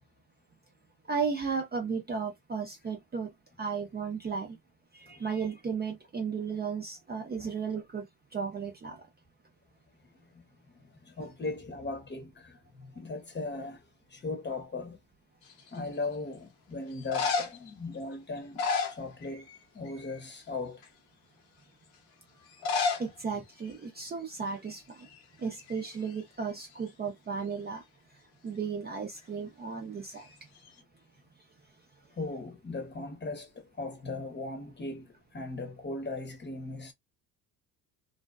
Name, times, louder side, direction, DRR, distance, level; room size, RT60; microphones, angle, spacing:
voice 1, 1.1-3.3 3.6-4.6 4.9-8.1 8.3-9.1 23.0-25.1 25.4-27.8 28.4-30.3, right 5 dB, 20° right, 0.7 m, -34 dB
voice 2, 11.0-13.8 14.1-15.0 15.7-19.5 19.7-20.8 32.1-36.9, left 3 dB, 20° left, 1.0 m, -38 dB
sound 1, 15.5-16.0 16.9-17.7 18.4-19.6 19.9-20.2 20.8-20.9 22.5-23.1 23.4-23.5 23.7-23.8 24.5-24.7 25.0-26.2 30.2-30.8, left 5 dB, 70° left, 1.0 m, -32 dB
2.5 x 2.2 x 2.3 m
hypercardioid pair, 70°, 50 cm